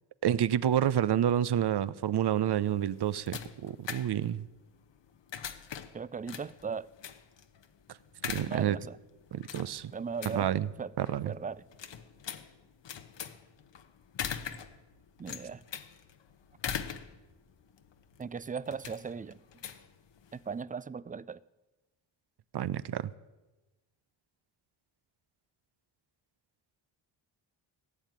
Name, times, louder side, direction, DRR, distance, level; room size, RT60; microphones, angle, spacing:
voice 1, 0.2-4.5 8.2-8.8 9.3-9.9 10.2-10.7 11.0-11.3 22.5-23.1, right 10 dB, 55° right, 18 dB, 0.7 m, -29 dB
sound 1, 2.6-20.6, left 8 dB, 60° left, 1.2 m, -43 dB
voice 2, 5.9-6.9 8.5-9.0 9.9-10.5 10.8-10.9 11.3-11.6 15.2-15.6 18.2-19.4 20.3-21.4, right 5 dB, 20° right, 19 dB, 0.4 m, -38 dB
16.0 x 7.4 x 9.6 m, 1.1 s
cardioid pair, 65°, 50 cm